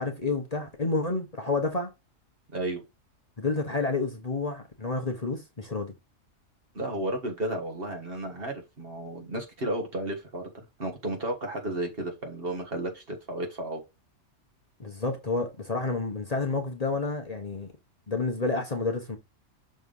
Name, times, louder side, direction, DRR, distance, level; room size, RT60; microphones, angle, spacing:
voice 1, 0.0-1.9 3.4-5.9 14.8-17.7 18.1-19.2, left 3 dB, 35° left, 1.1 m, -29 dB
voice 2, 2.5-2.8 6.7-13.8, right 1 dB, 50° right, 1.8 m, -33 dB
6.4 x 3.4 x 5.4 m
omnidirectional pair, 1.3 m